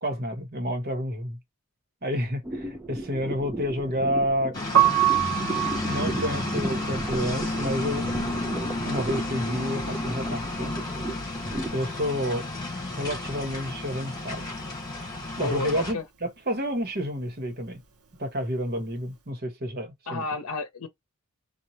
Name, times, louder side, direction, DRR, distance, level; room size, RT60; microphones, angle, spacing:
voice 1, 0.0-1.4 2.0-4.6 5.9-8.1 8.8-10.7 11.7-12.4 12.9-14.5 15.4-17.8 18.2-20.2, equal, 45° right, 1.2 m, -30 dB
sound 1, 2.4-11.7, right 2 dB, 10° right, 0.5 m, -35 dB
sound 2, 4.5-15.9, left 2 dB, 20° left, 2.6 m, -32 dB
Piano, 4.6-10.6 10.8-12.4 12.7-19.1, right 12 dB, 85° right, 0.8 m, -29 dB
voice 2, 15.4-16.1 20.1-20.9, left 3 dB, 85° left, 0.7 m, -31 dB
4.5 x 2.4 x 2.8 m
head